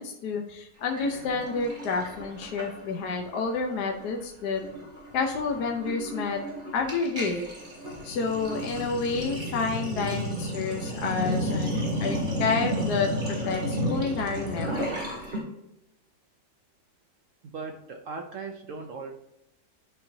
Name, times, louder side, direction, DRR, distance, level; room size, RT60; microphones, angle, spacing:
voice 1, 0.0-4.6 5.1-6.4 6.7-7.4 8.0-15.0, left 4 dB, 70° left, 2 dB, 1.3 m, -29 dB
Sink (filling or washing), 0.9-3.2 3.4-3.7 4.0-15.4, equal, 30° right, 2.1 m, -32 dB
voice 2, 17.4-19.1, right 4 dB, 65° right, 4 dB, 0.7 m, -38 dB
10.5 x 4.4 x 2.7 m, 0.88 s
omnidirectional pair, 1.9 m